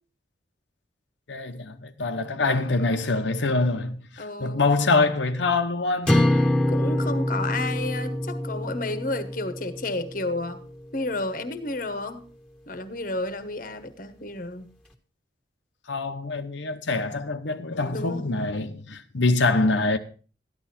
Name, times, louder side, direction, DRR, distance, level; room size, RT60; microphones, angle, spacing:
voice 1, 1.3-6.2 15.9-20.0, left 3 dB, 85° left, 1.0 m, -25 dB
voice 2, 4.2-4.6 6.7-10.6 10.9-12.2 12.7-14.7 17.9-18.3, left 2 dB, 45° left, 1.2 m, -31 dB
sound 1, 6.1-10.4, left 1 dB, 5° left, 1.7 m, -25 dB
13.5 x 11.5 x 4.3 m
head